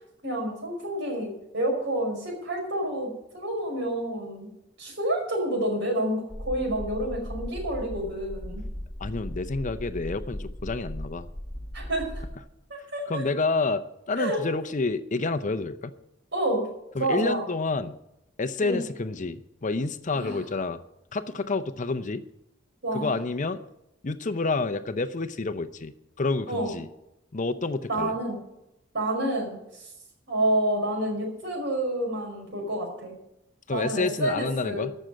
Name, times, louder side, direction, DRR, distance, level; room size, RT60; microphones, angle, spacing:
voice 1, 0.2-4.5 4.8-8.6 11.7-12.2 12.9-13.1 14.2-14.4 16.3-16.7 17.0-17.5 18.6-18.8 20.1-20.4 22.8-23.1 26.5-26.8 27.9-28.4 28.9-29.9 30.3-33.2 33.7-34.9, right 1 dB, 65° right, 2 dB, 5.2 m, -29 dB
sound 1, 6.3-12.4, equal, 10° left, 1.5 m, -37 dB
voice 2, 9.0-11.3 13.1-15.9 17.0-18.0 18.4-20.8 21.1-22.2 22.9-23.6 24.0-26.9 27.3-28.1 33.7-34.9, left 3 dB, 40° left, 12 dB, 0.7 m, -29 dB
14.0 x 6.5 x 8.9 m, 0.86 s
head